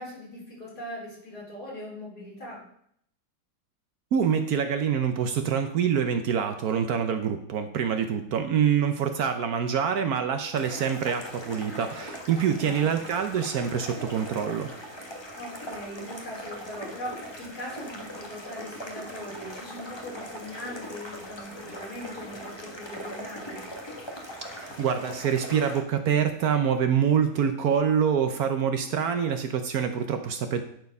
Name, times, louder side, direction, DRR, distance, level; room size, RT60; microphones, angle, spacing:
voice 1, 0.0-2.6 8.0-8.4 12.6-13.0 15.4-23.6, left 1 dB, 65° left, -7 dB, 4.6 m, -40 dB
voice 2, 4.1-14.7 24.5-30.6, right 7 dB, 65° right, 7 dB, 1.1 m, -26 dB
sound 1, 10.5-25.8, equal, 15° left, 1.1 m, -40 dB
10.5 x 4.5 x 5.3 m, 0.69 s
omnidirectional pair, 1.9 m